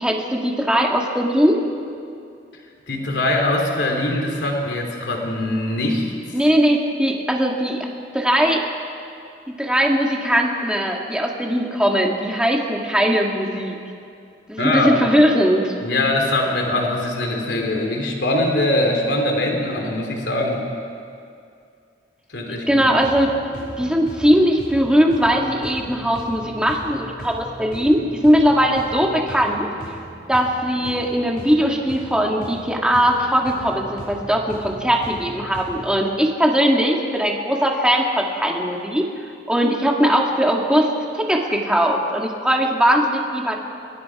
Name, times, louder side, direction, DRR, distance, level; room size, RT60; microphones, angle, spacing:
voice 1, 0.0-1.6 6.3-7.9 8.1-8.6 9.6-13.8 14.5-15.7 22.7-23.3 23.8-29.7 30.3-39.0 39.5-40.9 41.1-43.6, equal, 5° right, 0 dB, 2.0 m, -19 dB
voice 2, 2.9-6.1 14.6-15.0 15.8-20.7 22.3-22.9, left 1 dB, 70° left, 1 dB, 3.3 m, -22 dB
sound 1, 22.7-36.0, equal, 55° left, 5.7 m, -38 dB
28.0 x 22.5 x 4.8 m, 2.4 s
head